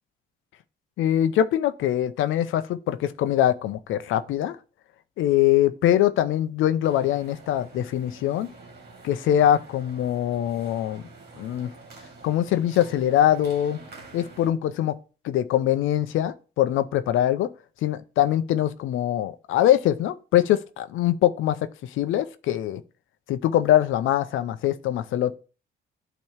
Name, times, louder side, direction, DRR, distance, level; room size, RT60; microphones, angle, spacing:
voice 1, 1.0-4.6 5.2-8.5 9.0-11.0 11.4-11.7 12.2-13.8 14.1-15.0 15.2-17.5 17.8-21.6 21.8-22.8 23.3-25.4, left 12 dB, 85° left, 0.6 m, -23 dB
sound 1, 6.8-14.5, right 3 dB, 55° right, 1.9 m, -47 dB
8.8 x 3.0 x 4.6 m
cardioid pair, 90°, 20 cm